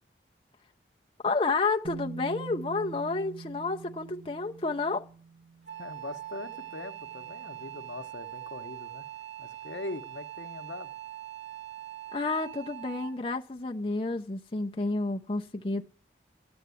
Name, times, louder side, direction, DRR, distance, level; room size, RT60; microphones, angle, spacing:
voice 1, 1.2-5.0 12.1-15.8, left 3 dB, 30° left, 0.6 m, -30 dB
Bass guitar, 1.8-7.9, right 5 dB, 65° right, 1.0 m, -45 dB
Wind instrument woodwind instrument, 5.7-13.3, right 13 dB, 80° right, 6.4 m, -42 dB
voice 2, 5.8-9.1 9.4-10.9, left 2 dB, 80° left, 0.8 m, -41 dB
13.0 x 8.6 x 8.3 m
head